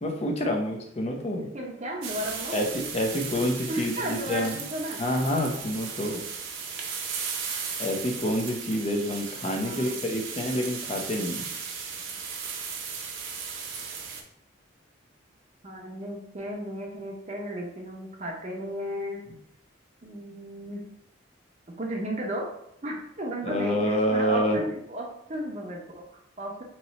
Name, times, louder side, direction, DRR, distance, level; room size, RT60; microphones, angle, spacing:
voice 1, 0.0-1.4 2.5-4.6 5.0-6.2 7.8-11.4 23.4-24.6, equal, 35° left, 2 dB, 0.6 m, -27 dB
voice 2, 1.5-2.5 3.7-5.0 9.6-9.9 15.6-19.2 20.0-20.8 21.8-22.5 22.8-26.6, right 1 dB, 35° right, -1 dB, 0.7 m, -34 dB
sound 1, 2.0-14.2, right 6 dB, 85° right, 0.6 m, -36 dB
3.1 x 2.9 x 4.0 m, 0.72 s
head